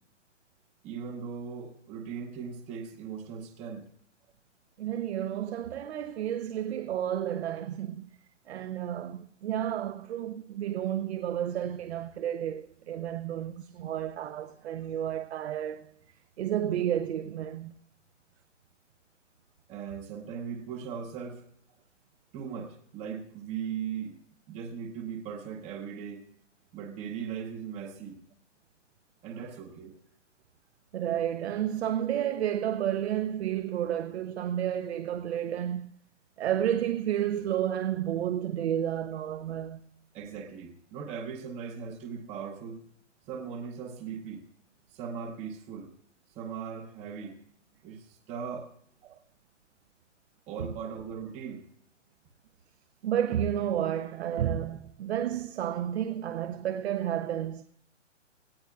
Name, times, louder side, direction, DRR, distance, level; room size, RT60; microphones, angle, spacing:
voice 1, 0.8-3.9 19.7-21.4 22.3-24.2 24.5-26.2 26.7-28.2 29.2-30.0 40.1-42.8 43.3-44.4 44.9-45.9 46.3-47.4 47.8-48.7 50.5-51.7, right 7 dB, 15° right, 0.8 m, -39 dB
voice 2, 4.8-8.1 8.5-15.9 16.4-17.8 30.9-35.9 36.4-39.8 49.0-49.2 50.6-50.7 53.0-57.6, right 10 dB, 60° right, 0.6 m, -31 dB
17.5 x 17.0 x 2.3 m
hypercardioid pair, 135°, 37 cm